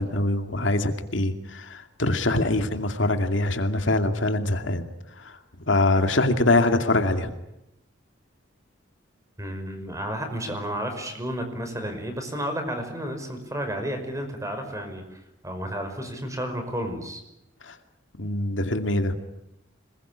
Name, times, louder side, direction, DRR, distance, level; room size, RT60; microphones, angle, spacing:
voice 1, 0.0-4.9 5.2-5.4 5.7-7.3 17.6-17.8 18.2-19.1, left 2 dB, 75° left, 7 dB, 2.4 m, -23 dB
voice 2, 9.4-17.2, equal, 15° right, 7 dB, 5.4 m, -32 dB
26.5 x 21.5 x 9.9 m, 0.85 s
head